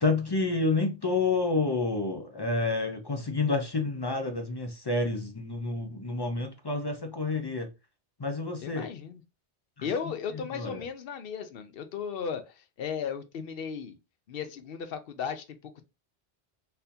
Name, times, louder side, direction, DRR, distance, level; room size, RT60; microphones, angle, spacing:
voice 1, 0.0-7.7 8.2-8.9 9.8-9.9 10.5-10.8, left 3 dB, 35° left, 0.4 m, -29 dB
voice 2, 8.6-9.2 9.8-14.0 14.3-15.8, left 6 dB, 65° left, 0.8 m, -36 dB
4.1 x 2.7 x 2.6 m
omnidirectional pair, 1.1 m